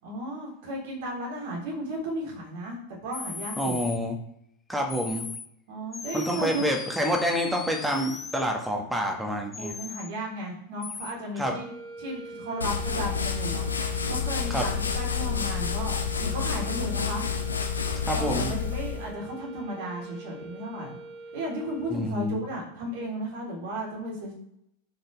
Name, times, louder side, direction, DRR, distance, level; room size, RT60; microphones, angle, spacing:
voice 1, 0.0-3.8 5.7-6.7 9.6-11.7 12.0-13.7 14.1-17.2 18.1-21.0 21.3-24.3, right 1 dB, 55° right, -2 dB, 3.8 m, -34 dB
sound 1, 3.1-4.0 4.9-5.5 5.9-8.4 9.5-10.1 10.8-11.1, left 5 dB, 15° left, 0.6 m, -38 dB
voice 2, 3.6-4.2 4.7-5.3 6.1-9.7 11.4-11.5 14.5-14.7 18.1-18.5 21.9-22.4, equal, 5° right, 2 dB, 1.8 m, -27 dB
sound 2, 11.4-22.3, right 2 dB, 25° right, 1.7 m, -43 dB
sound 3, 12.6-19.1, left 6 dB, 75° left, 1.0 m, -29 dB
12.0 x 6.6 x 3.5 m, 0.75 s
figure-of-eight pair, 90°, 0 cm